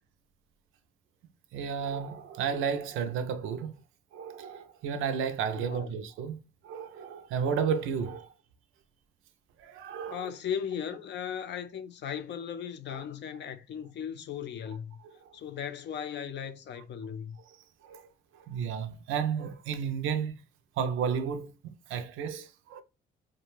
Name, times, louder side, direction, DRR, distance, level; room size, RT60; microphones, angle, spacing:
voice 1, 1.5-3.8 4.1-6.4 6.6-8.3 9.6-10.3 12.9-13.0 15.0-15.4 17.5-17.6 17.8-20.4 20.8-22.8, right 7 dB, 85° right, 0.5 m, -33 dB
voice 2, 5.5-5.9 10.1-15.0 15.3-17.4, left 8 dB, 60° left, 0.5 m, -37 dB
2.5 x 2.2 x 2.9 m
cardioid pair, 90°, 20 cm